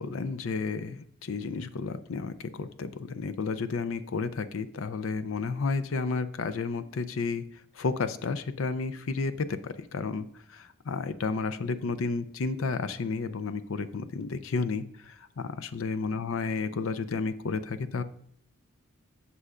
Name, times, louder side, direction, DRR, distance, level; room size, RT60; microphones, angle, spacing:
voice 1, 0.0-7.4 7.7-18.0, left 4 dB, 65° left, 11 dB, 0.5 m, -32 dB
14.5 x 5.5 x 2.5 m, 0.63 s
head